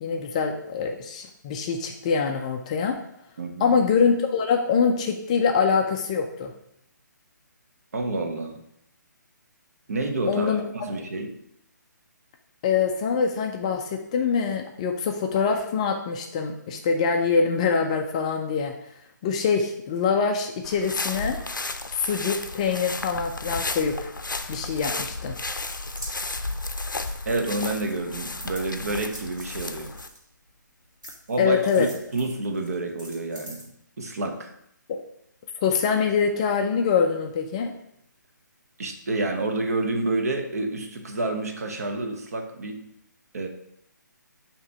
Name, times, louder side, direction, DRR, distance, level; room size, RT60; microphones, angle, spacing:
voice 1, 0.0-3.0 3.6-6.5 10.3-10.6 12.6-18.7 19.2-21.4 21.9-24.1 24.5-25.4 31.4-31.9 34.9-35.0 35.6-37.7, left 6 dB, 20° left, 3 dB, 0.3 m, -24 dB
voice 2, 3.4-3.8 7.9-8.6 9.9-11.4 27.3-29.9 31.3-31.9 32.1-33.6 34.0-34.5 38.8-42.9 43.3-43.5, right 2 dB, 50° right, 4 dB, 0.9 m, -29 dB
sound 1, 20.6-30.1, left 3 dB, 80° left, 0.5 m, -33 dB
sound 2, 25.2-27.5 27.9-30.6 31.0-33.7, right 1 dB, 70° right, 2.1 m, -44 dB
7.1 x 2.9 x 4.6 m, 0.75 s
figure-of-eight pair, 140°, 10 cm